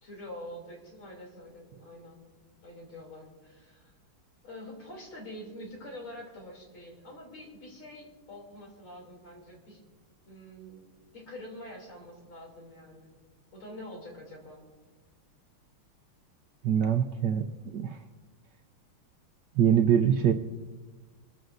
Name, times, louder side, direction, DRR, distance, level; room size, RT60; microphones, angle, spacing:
voice 1, 0.0-2.2 2.6-4.0 4.4-9.8 10.3-10.9 11.1-13.2 13.5-14.6, left 1 dB, 70° left, 0 dB, 3.8 m, -46 dB
voice 2, 16.6-17.4 17.7-18.0 19.6-20.3, right 9 dB, 70° right, 5 dB, 1.1 m, -23 dB
24.5 x 14.0 x 2.6 m, 1.3 s
omnidirectional pair, 2.3 m